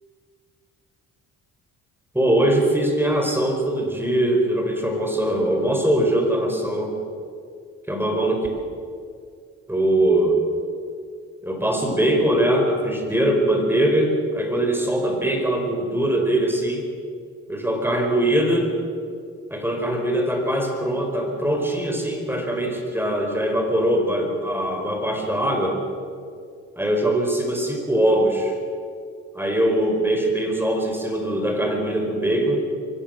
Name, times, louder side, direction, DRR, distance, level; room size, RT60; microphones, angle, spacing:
voice 1, 2.1-6.9 7.9-8.5 9.7-10.4 11.4-16.9 17.5-18.7 19.5-25.8 26.8-28.6 29.3-32.6, right 1 dB, 5° right, 2 dB, 4.8 m, -22 dB
24.0 x 16.5 x 6.7 m, 2.2 s
cardioid pair, 90°, 30 cm